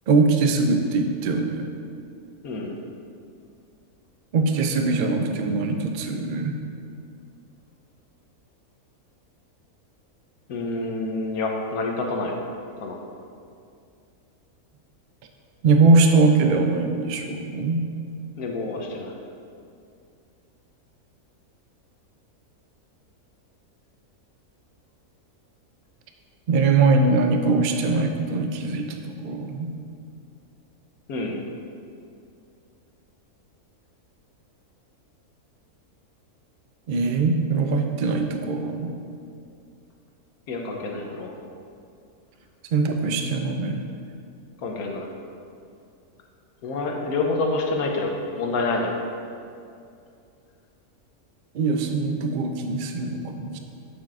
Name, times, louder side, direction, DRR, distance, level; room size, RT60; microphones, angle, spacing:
voice 1, 0.1-1.7 4.3-6.6 15.6-17.8 26.5-29.7 36.9-38.9 42.7-43.8 51.5-53.6, right 3 dB, 70° right, 4 dB, 0.4 m, -22 dB
voice 2, 2.4-2.8 10.5-12.3 12.8-13.0 18.4-19.2 31.1-31.4 40.5-41.3 44.6-45.1 46.6-48.9, left 3 dB, 80° left, 1 dB, 1.2 m, -27 dB
8.5 x 7.3 x 2.5 m, 2.5 s
omnidirectional pair, 1.6 m